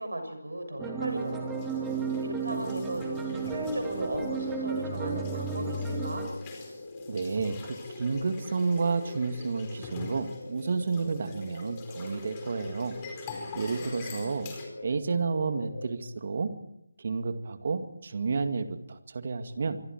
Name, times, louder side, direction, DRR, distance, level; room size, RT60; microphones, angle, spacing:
voice 1, 0.0-6.2 13.8-14.1, right 1 dB, 65° right, 6 dB, 6.9 m, -37 dB
sound 1, 0.6-15.9, left 2 dB, 60° left, 7.8 m, -43 dB
sound 2, 0.8-6.3, right 4 dB, 10° right, 2.8 m, -33 dB
sound 3, 1.0-14.7, left 4 dB, 20° left, 4.8 m, -46 dB
voice 2, 7.1-13.0 13.3-14.5 14.8-16.6 17.0-19.8, right 4 dB, 40° right, 9 dB, 2.1 m, -31 dB
26.5 x 23.5 x 4.7 m, 0.75 s
figure-of-eight pair, 155°, 0 cm